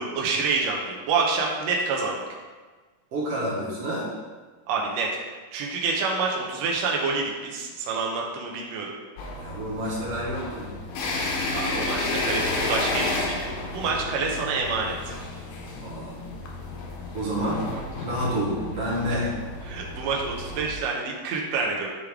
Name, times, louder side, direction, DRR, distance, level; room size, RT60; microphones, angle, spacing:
voice 1, 0.0-2.2 4.7-5.1 5.5-8.9 11.5-15.1 17.7-17.8 19.1-19.3 19.7-21.9, right 4 dB, 80° right, -1 dB, 1.5 m, -27 dB
voice 2, 3.1-4.1 9.4-10.7 15.8-16.2 17.1-17.7 18.0-19.3, equal, 55° right, -6 dB, 1.8 m, -29 dB
sound 1, 9.2-20.7, left 2 dB, 75° left, 2.4 m, -32 dB
9.5 x 3.3 x 3.5 m, 1.4 s
omnidirectional pair, 4.0 m